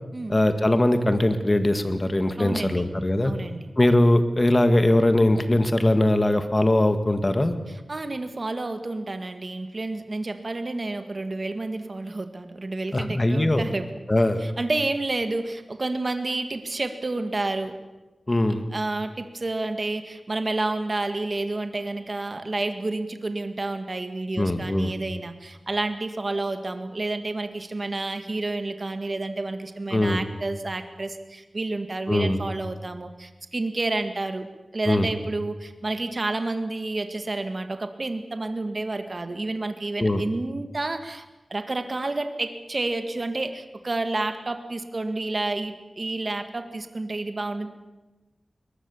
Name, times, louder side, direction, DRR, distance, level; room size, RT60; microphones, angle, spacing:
voice 1, 0.3-3.3 3.8-7.6 12.9-13.6 14.1-14.4 18.3-18.6 24.4-24.9 29.9-30.2 32.1-32.4 34.9-35.1 40.0-40.2, left 1 dB, 25° left, 9 dB, 1.8 m, -21 dB
voice 2, 2.4-2.9 3.2-3.7 7.9-13.9 14.4-17.8 18.7-34.5 34.7-41.2 41.5-47.7, right 2 dB, 40° right, 8 dB, 1.9 m, -30 dB
22.0 x 20.5 x 7.2 m, 1.1 s
wide cardioid pair, 105°, 0 cm